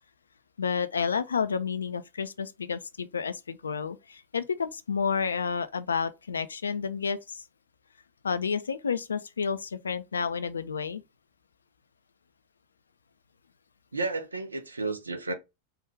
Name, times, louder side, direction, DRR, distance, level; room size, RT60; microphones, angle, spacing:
voice 1, 0.6-7.4 8.2-11.0, left 6 dB, 70° left, 0.3 m, -30 dB
voice 2, 13.9-15.3, right 3 dB, 80° right, 0.5 m, -32 dB
3.5 x 2.3 x 3.2 m
figure-of-eight pair, 90°, 0 cm